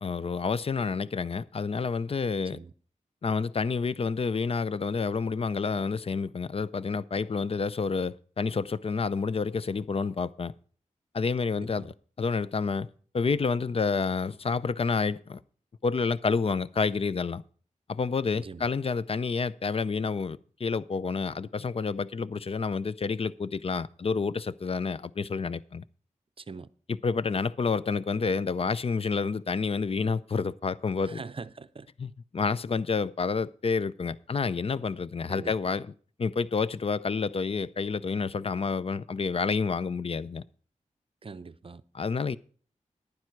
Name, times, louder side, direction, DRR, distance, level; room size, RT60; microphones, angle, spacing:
voice 1, 0.0-2.6 3.2-10.5 11.1-12.9 13.1-15.4 15.8-17.4 17.9-25.8 26.9-31.2 32.0-35.9 36.2-40.4 41.9-42.4, left 4 dB, 45° left, 0.5 m, -29 dB
voice 2, 11.5-11.9 18.4-18.7 26.4-26.7 31.0-31.9 35.3-35.5 41.2-41.8, right 4 dB, 40° right, 0.6 m, -42 dB
11.0 x 9.6 x 4.6 m
wide cardioid pair, 70°, 13 cm